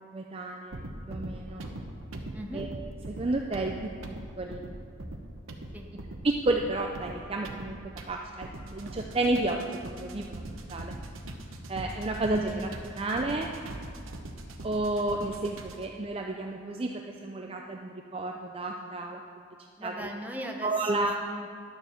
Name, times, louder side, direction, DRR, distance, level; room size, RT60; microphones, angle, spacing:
voice 1, 0.0-1.7 2.5-3.9 4.4-4.6 6.2-10.9 11.7-13.5 14.6-19.2 19.8-20.1 20.6-21.2, right 2 dB, 30° right, 2 dB, 0.5 m, -31 dB
sound 1, 0.7-16.0, right 1 dB, 90° right, 1.0 m, -42 dB
voice 2, 13.0-13.5 19.8-21.5, equal, 10° right, 1 dB, 0.9 m, -40 dB
11.0 x 7.1 x 6.6 m, 2.3 s
head